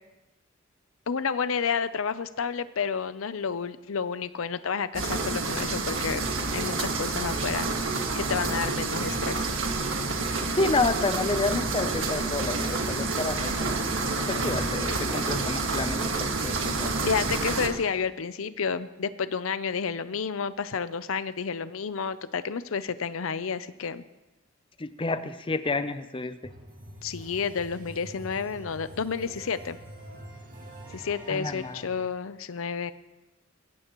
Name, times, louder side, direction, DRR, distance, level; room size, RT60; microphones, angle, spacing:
voice 1, 1.1-6.2 6.5-7.7 8.2-9.5 17.1-24.0 27.0-29.8 30.9-32.9, left 6 dB, 80° left, 14 dB, 0.6 m, -30 dB
sound 1, 4.9-17.7, right 3 dB, 70° right, 1.8 m, -28 dB
voice 2, 10.6-13.8 14.3-16.9 24.8-26.4 31.3-31.8, left 3 dB, 25° left, 11 dB, 0.6 m, -29 dB
sound 2, 26.4-32.0, equal, 40° right, 2.4 m, -45 dB
21.5 x 16.0 x 3.1 m, 1.1 s
head